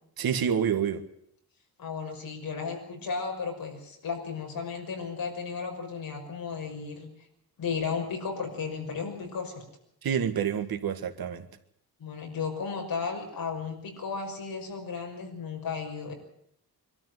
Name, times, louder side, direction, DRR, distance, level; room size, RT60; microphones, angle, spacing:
voice 1, 0.2-1.0 10.0-11.5, right 8 dB, 70° right, 1.8 m, -28 dB
voice 2, 1.8-7.1 7.6-9.5 12.0-16.1, left 5 dB, 65° left, 6.0 m, -34 dB
24.5 x 13.0 x 9.3 m
wide cardioid pair, 170°, 37 cm